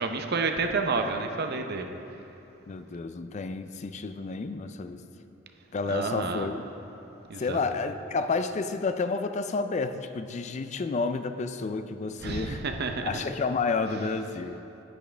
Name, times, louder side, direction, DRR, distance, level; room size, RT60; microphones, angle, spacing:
voice 1, 0.0-1.9 5.9-6.5 7.3-7.6 12.2-13.1, right 4 dB, 55° right, 5 dB, 0.6 m, -29 dB
voice 2, 2.7-5.0 5.7-6.6 7.4-12.6 13.0-14.6, left 4 dB, 35° left, 9 dB, 0.4 m, -30 dB
9.9 x 9.3 x 3.4 m, 3.0 s
head